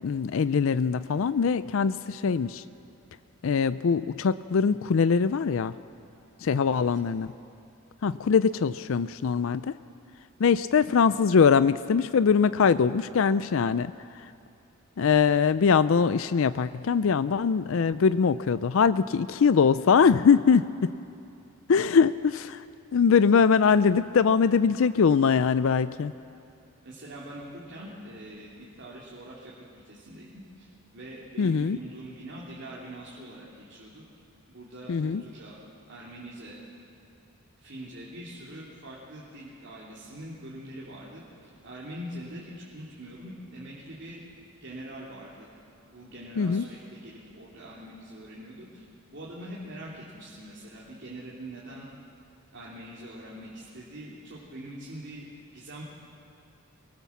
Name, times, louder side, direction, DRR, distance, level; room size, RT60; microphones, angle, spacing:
voice 1, 0.0-2.6 3.4-5.7 6.4-7.3 8.0-9.8 10.4-14.3 15.0-20.9 21.7-22.6 22.9-26.1 31.4-31.8 34.9-35.2 46.4-46.6, left 6 dB, 60° left, 14 dB, 0.4 m, -22 dB
voice 2, 26.8-30.7 30.9-34.0 34.5-35.6 35.9-36.6 37.6-44.2 44.6-45.5 45.9-48.8 49.1-51.9 52.5-55.3 55.5-55.8, right 1 dB, 55° right, -6 dB, 3.0 m, -43 dB
23.5 x 19.0 x 7.3 m, 2.6 s
head